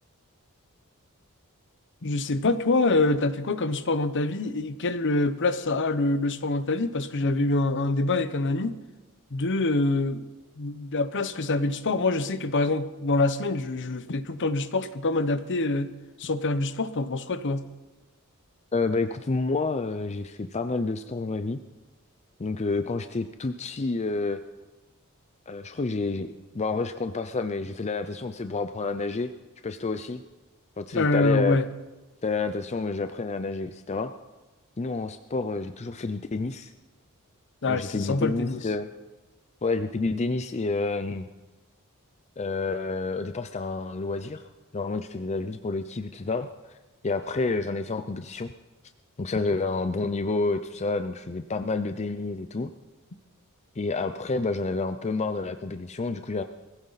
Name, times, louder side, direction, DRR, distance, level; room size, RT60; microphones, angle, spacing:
voice 1, 2.0-8.8 9.3-10.3 10.6-15.9 16.2-17.7 30.9-31.7 37.6-38.6, left 2 dB, 55° left, 12 dB, 0.9 m, -25 dB
voice 2, 18.7-21.6 22.4-24.4 25.5-26.3 26.5-29.3 29.6-30.2 30.8-31.6 32.2-34.1 34.8-36.7 37.7-38.9 39.6-41.3 42.4-46.5 47.0-48.5 49.2-52.7 53.8-56.4, left 3 dB, 30° left, 9 dB, 0.5 m, -29 dB
22.0 x 15.5 x 4.1 m, 1.2 s
head